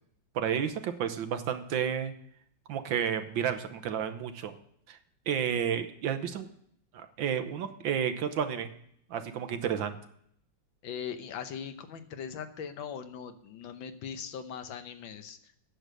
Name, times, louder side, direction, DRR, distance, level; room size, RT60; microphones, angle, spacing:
voice 1, 0.4-2.1 2.7-4.5 4.9-5.0 5.3-6.5 6.9-8.7 9.1-10.0, right 8 dB, 85° right, 9 dB, 1.7 m, -31 dB
voice 2, 10.8-15.6, left 7 dB, 85° left, 9 dB, 1.7 m, -40 dB
9.7 x 6.7 x 7.6 m, 0.68 s
omnidirectional pair, 2.0 m